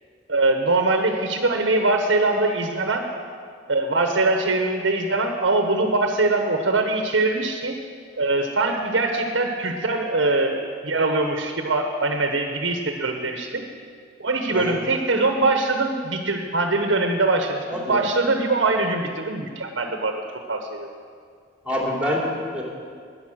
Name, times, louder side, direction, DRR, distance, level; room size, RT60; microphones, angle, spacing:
voice 1, 0.3-3.0 3.7-7.7 8.2-13.6 14.2-17.6 17.9-20.2 20.5-20.9, right 2 dB, 80° right, 4 dB, 1.1 m, -22 dB
voice 2, 17.7-18.1 21.6-22.6, left 1 dB, 5° right, -3 dB, 2.9 m, -26 dB
13.5 x 9.7 x 6.4 m, 2.1 s
head